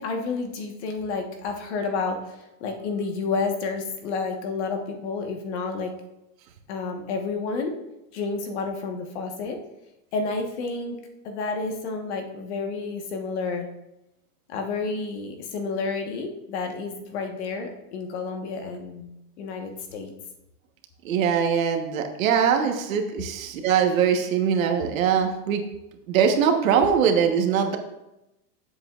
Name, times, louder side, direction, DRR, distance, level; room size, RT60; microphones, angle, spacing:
voice 1, 0.0-5.9 6.7-7.7 8.1-9.6 10.1-11.0 11.2-13.7 14.5-20.1, left 4 dB, 45° left, 3 dB, 1.3 m, -30 dB
voice 2, 21.0-25.6 26.1-27.8, right 7 dB, 55° right, 5 dB, 1.3 m, -22 dB
15.0 x 7.8 x 2.4 m, 0.92 s
supercardioid pair, 175°, 48 cm